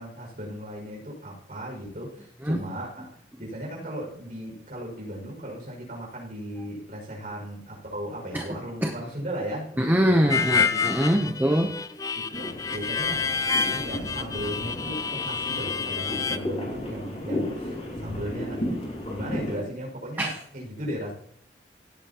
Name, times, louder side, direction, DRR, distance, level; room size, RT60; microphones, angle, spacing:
voice 1, 0.0-11.0 12.1-13.4 13.7-21.1, equal, 45° right, -2 dB, 5.8 m, -36 dB
voice 2, 9.8-11.8 20.2-20.4, equal, 10° right, 3 dB, 0.8 m, -23 dB
Harmonica, 10.3-16.4, left 5 dB, 20° left, 0.4 m, -28 dB
sound 1, 12.3-19.6, left 1 dB, 35° left, 4.6 m, -34 dB
17.0 x 8.8 x 3.0 m, 0.66 s
head